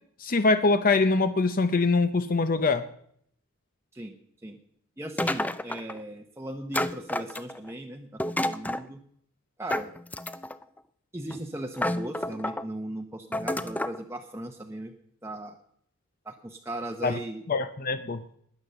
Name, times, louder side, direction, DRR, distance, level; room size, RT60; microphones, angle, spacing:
voice 1, 0.2-2.8 17.0-17.2 17.5-18.2, left 3 dB, 40° left, 10 dB, 0.7 m, -23 dB
voice 2, 5.0-8.1 8.4-9.0 9.6-9.9 11.1-14.9 15.2-15.6 16.3-17.4, right 1 dB, 10° right, 3 dB, 0.9 m, -37 dB
sound 1, 5.2-6.0 6.7-7.7 8.2-8.9 9.7-10.6 11.3-11.4 11.8-12.6 13.3-14.0, left 1 dB, 5° left, 0.5 m, -30 dB
20.0 x 8.0 x 6.8 m, 0.67 s
head